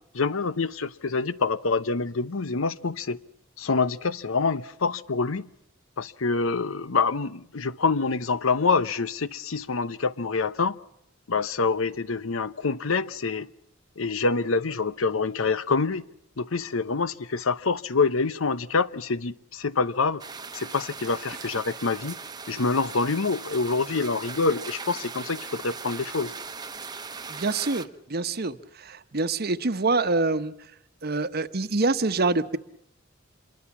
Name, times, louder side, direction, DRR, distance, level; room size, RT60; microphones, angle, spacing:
voice 1, 0.1-3.2 3.6-5.5 6.0-10.8 11.3-13.5 14.0-16.0 16.4-20.2 20.5-22.2 22.5-26.3, left 4 dB, 90° left, 16 dB, 0.9 m, -26 dB
sound 1, 20.2-27.8, right 5 dB, 20° right, 1.0 m, -39 dB
voice 2, 27.3-30.5 31.0-32.6, right 3 dB, 50° right, 12 dB, 1.1 m, -26 dB
27.0 x 22.5 x 7.3 m, 0.77 s
head